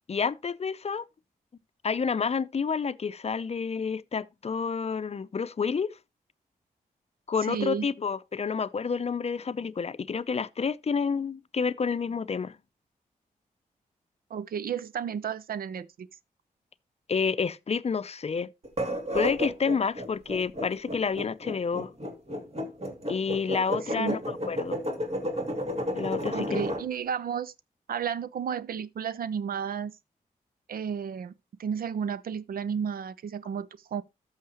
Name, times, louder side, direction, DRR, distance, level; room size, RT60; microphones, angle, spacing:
voice 1, 0.1-1.1 1.8-6.0 7.3-12.6 17.1-18.5 19.1-21.9 23.1-24.2 24.5-24.8 25.9-26.6, left 5 dB, 45° left, 0.6 m, -29 dB
voice 2, 7.4-7.9 14.3-16.1 23.9-24.4 26.3-27.5 27.9-29.9 30.7-31.3 31.6-34.0, right 7 dB, 75° right, 0.6 m, -32 dB
sound 1, 18.6-26.8, equal, 40° right, 2.7 m, -32 dB
13.0 x 6.5 x 3.0 m
cardioid pair, 55°, 15 cm